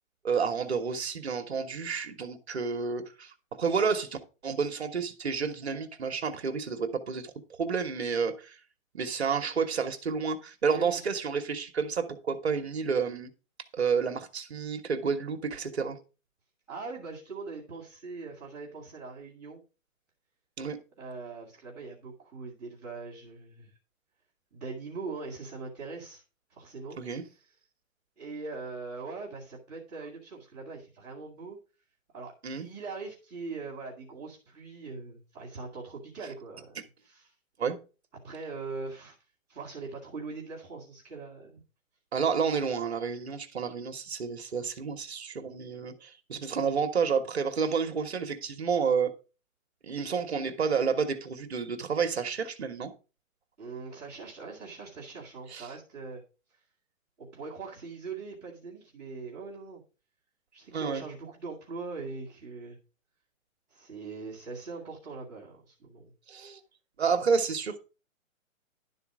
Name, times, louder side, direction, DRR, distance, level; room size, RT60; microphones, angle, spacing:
voice 1, 0.2-7.3 7.6-8.6 8.9-13.3 13.7-16.0 20.6-20.8 27.0-27.2 32.4-32.6 37.6-37.8 42.1-49.1 49.8-52.9 55.5-55.7 60.7-61.0 66.3-66.6 67.0-67.8, right 5 dB, 50° right, 1.1 m, -30 dB
voice 2, 10.7-11.1 16.7-19.6 21.0-23.7 24.5-26.2 26.5-27.0 28.2-31.6 32.1-37.3 38.2-39.1 39.5-41.6 53.6-56.2 57.2-59.8 60.5-62.8 63.7-66.1, right 4 dB, ahead, 0.9 m, -41 dB
11.5 x 4.1 x 6.0 m
hypercardioid pair, 180°, 42 cm